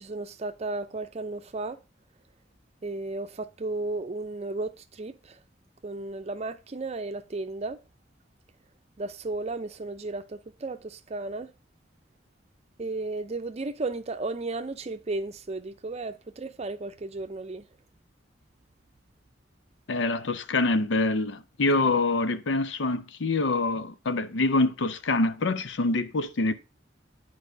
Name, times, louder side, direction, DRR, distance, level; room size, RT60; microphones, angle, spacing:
voice 1, 0.0-1.8 2.8-4.7 5.0-5.1 5.8-7.8 9.0-11.5 12.8-17.6, right 2 dB, 35° right, 0.6 m, -34 dB
voice 2, 19.9-26.5, left 2 dB, 80° left, 0.6 m, -25 dB
10.5 x 4.8 x 2.6 m
head